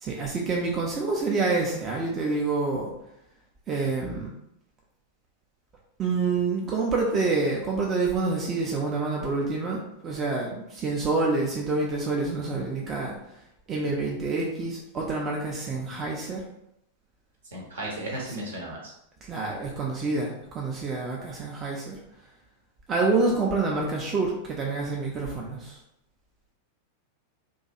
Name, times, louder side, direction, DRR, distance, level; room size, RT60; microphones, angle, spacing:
voice 1, 0.0-2.9 3.7-4.3 6.0-13.1 13.7-16.4 18.3-18.4 19.2-22.0 22.9-25.8, right 3 dB, 25° right, -1 dB, 0.4 m, -27 dB
voice 2, 17.5-18.9, right 1 dB, 65° right, -2 dB, 0.8 m, -35 dB
2.5 x 2.2 x 2.7 m, 0.80 s
figure-of-eight pair, 90°, 0 cm